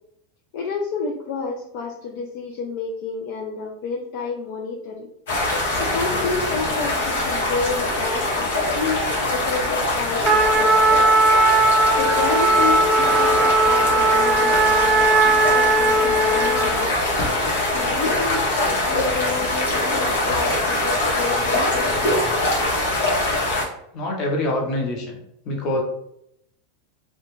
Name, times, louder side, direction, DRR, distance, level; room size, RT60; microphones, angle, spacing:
voice 1, 0.5-5.1 5.8-9.0 9.3-10.9 11.9-17.0 17.7-22.0 22.4-22.5, left 4 dB, 55° left, 0 dB, 0.4 m, -30 dB
sound 1, 5.3-23.6, left 2 dB, 85° left, 0.8 m, -23 dB
Trumpet, 10.2-16.8, right 2 dB, 15° right, 0.3 m, -18 dB
voice 2, 23.9-25.2 25.5-25.8, left 1 dB, 35° left, -1 dB, 0.7 m, -25 dB
2.3 x 2.2 x 3.0 m, 0.77 s
supercardioid pair, 155°, 0 cm